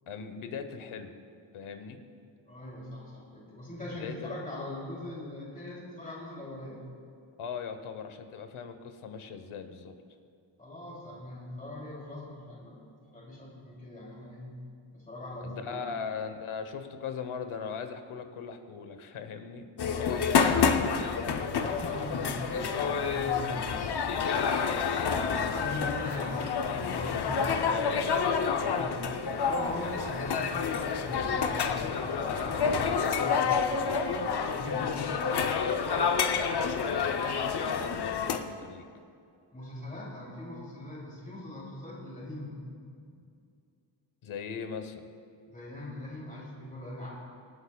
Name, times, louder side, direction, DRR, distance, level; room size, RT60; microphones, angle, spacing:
voice 1, 0.1-1.1 1.5-2.0 3.9-4.4 7.4-9.9 15.4-20.8 27.5-28.3 31.1-31.4 36.3-38.8 44.2-45.0, left 6 dB, 80° left, 8 dB, 1.1 m, -39 dB
voice 2, 2.4-6.8 10.6-14.5 14.9-15.9 21.5-23.8 25.0-28.2 28.5-35.1 39.5-42.6 43.0-43.2 45.4-47.2, left 1 dB, 15° left, -5 dB, 3.0 m, -41 dB
sound 1, 19.8-38.4, left 6 dB, 55° left, 0.7 m, -28 dB
26.5 x 8.9 x 2.3 m, 2.4 s
wide cardioid pair, 165°, 48 cm